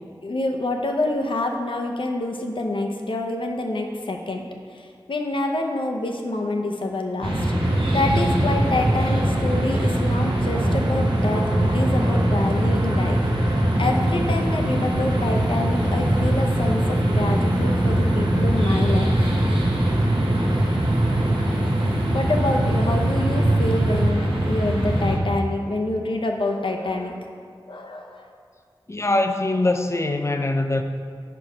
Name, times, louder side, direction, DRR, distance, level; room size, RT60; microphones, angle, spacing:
voice 1, 0.2-4.5 4.7-7.5 7.9-13.2 13.5-19.3 22.1-27.3 27.7-28.3, left 2 dB, 75° left, 2 dB, 0.6 m, -27 dB
sound 1, 7.2-25.2, equal, 80° right, 1.1 m, -22 dB
sound 2, 7.6-24.1, right 2 dB, 55° right, 0.4 m, -27 dB
voice 2, 28.9-30.8, left 2 dB, 30° left, 6 dB, 0.5 m, -22 dB
4.9 x 4.5 x 5.3 m, 2.3 s
wide cardioid pair, 50°, 9 cm